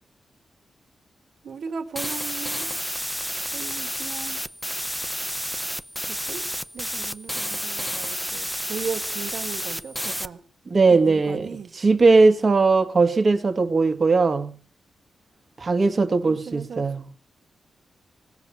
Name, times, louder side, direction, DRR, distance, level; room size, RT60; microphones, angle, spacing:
voice 1, 1.4-2.7 3.5-4.4 6.1-6.5 6.7-10.4 10.9-11.7 16.3-17.1, right 6 dB, 65° right, 2.3 m, -36 dB
sound 1, 2.0-10.3, equal, ahead, 0.7 m, -30 dB
voice 2, 10.7-14.6 15.6-17.1, right 3 dB, 35° right, 1.9 m, -19 dB
20.0 x 7.0 x 8.9 m
wide cardioid pair, 150°, 0 cm